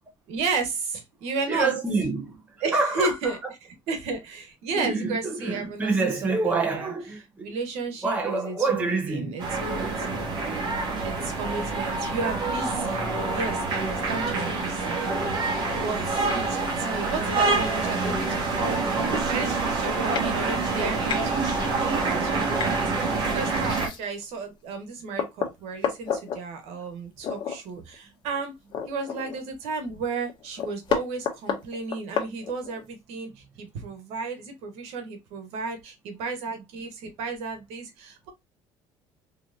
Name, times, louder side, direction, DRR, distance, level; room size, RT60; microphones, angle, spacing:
voice 1, 0.3-1.7 2.6-3.4 3.9-5.9 6.2-6.9 7.4-10.4 11.0-15.0 15.7-21.4 21.8-28.5 28.9-38.3, right 4 dB, 75° right, 1.3 m, -33 dB
voice 2, 1.5-2.4 2.7-3.3 4.7-7.5 8.0-9.4, right 3 dB, 15° right, 1.0 m, -27 dB
sound 1, 9.4-23.9, right 3 dB, 40° right, 1.5 m, -26 dB
sound 2, 16.2-16.4 17.9-18.0 18.5-18.6 18.8-19.1 19.7-19.8 20.1-20.3 20.7-21.2 22.5-22.8 23.5-24.2 24.7-24.8 25.2-26.4 27.2-27.6 27.9-28.0 28.4-29.6 29.9-30.0 30.3-32.8, left 7 dB, 45° left, 1.0 m, -31 dB
3.9 x 3.1 x 2.5 m
cardioid pair, 140°, 11 cm